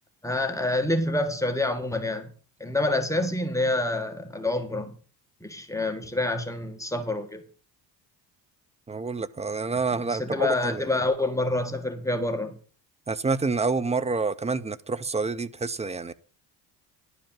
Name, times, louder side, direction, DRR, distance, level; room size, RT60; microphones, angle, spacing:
voice 1, 0.2-2.3 2.6-5.0 5.4-7.4 9.9-12.5, left 2 dB, 5° left, 1.6 m, -27 dB
voice 2, 8.9-10.8 13.1-16.1, right 4 dB, 15° right, 0.6 m, -28 dB
11.5 x 5.2 x 7.3 m
cardioid pair, 100°, 42 cm